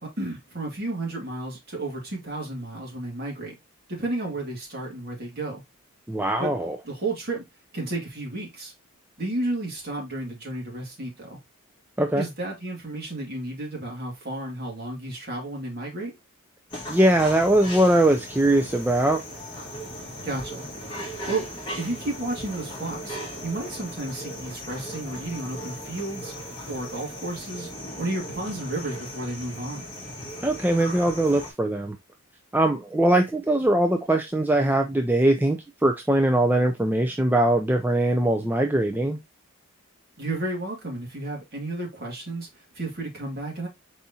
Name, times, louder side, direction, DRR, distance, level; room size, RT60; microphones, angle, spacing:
voice 1, 0.0-3.5 3.9-5.6 6.4-6.5 6.8-7.4 7.7-8.7 9.2-11.4 12.2-16.1 20.2-20.6 21.3-21.5 21.8-26.3 26.7-27.7 28.0-29.8 40.2-43.7, right 2 dB, 45° right, 2.2 m, -32 dB
voice 2, 6.1-6.8 12.0-12.3 16.9-19.2 30.4-32.0 32.5-39.2, right 1 dB, 10° right, 0.3 m, -21 dB
sound 1, 16.7-31.5, equal, 20° left, 1.6 m, -37 dB
4.7 x 4.1 x 2.7 m
head